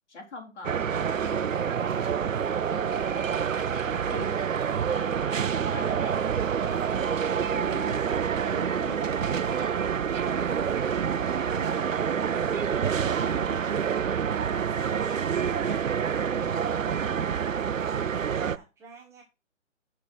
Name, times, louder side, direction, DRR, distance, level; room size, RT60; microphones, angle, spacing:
voice 1, 0.1-6.2 6.6-9.0 9.3-10.0 10.3-11.9 12.2-17.5, left 3 dB, 60° left, 2 dB, 4.2 m, -46 dB
sound 1, 0.6-18.6, right 7 dB, 75° right, 0.8 m, -27 dB
voice 2, 18.1-19.2, right 3 dB, 5° right, -1 dB, 1.0 m, -51 dB
9.8 x 6.0 x 4.4 m, 0.27 s
figure-of-eight pair, 145°, 39 cm